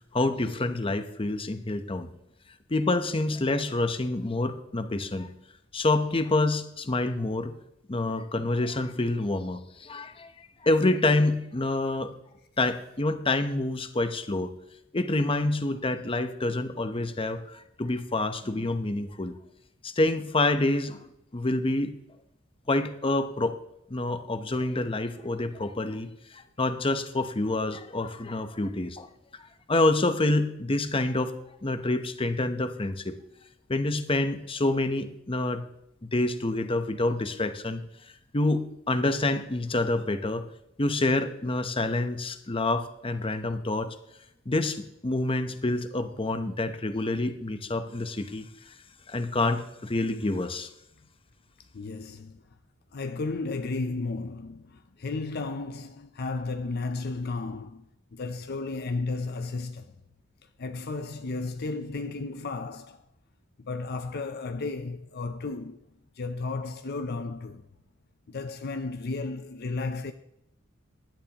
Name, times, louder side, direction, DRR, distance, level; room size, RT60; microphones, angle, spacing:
voice 1, 0.1-2.1 2.7-5.3 5.7-7.5 7.9-10.3 10.6-12.1 12.6-14.5 14.9-19.4 19.8-21.1 21.3-22.0 22.7-23.6 23.9-29.1 29.7-33.2 33.7-35.7 36.0-37.8 38.3-40.4 40.8-43.9 44.5-48.5 49.1-50.7, left 2 dB, 25° left, 0.8 m, -27 dB
voice 2, 51.7-52.4 52.9-59.9 60.6-63.1 63.6-65.8 66.2-67.7 68.3-70.1, left 3 dB, 55° left, 0.6 m, -33 dB
16.0 x 11.0 x 3.0 m
head